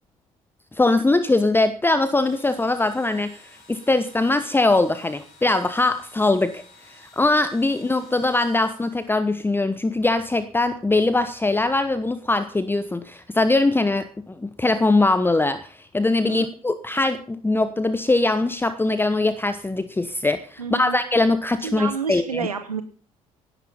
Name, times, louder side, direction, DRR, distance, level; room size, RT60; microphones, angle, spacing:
voice 1, 0.7-22.5, left 2 dB, 10° left, 13 dB, 1.0 m, -22 dB
Engine / Drill, 2.1-9.5, left 3 dB, 55° left, 5.3 m, -52 dB
voice 2, 16.2-16.5 20.6-21.0 21.6-22.8, right 6 dB, 85° right, 11 dB, 0.8 m, -30 dB
17.0 x 10.5 x 5.5 m, 0.43 s
figure-of-eight pair, 55°, 18 cm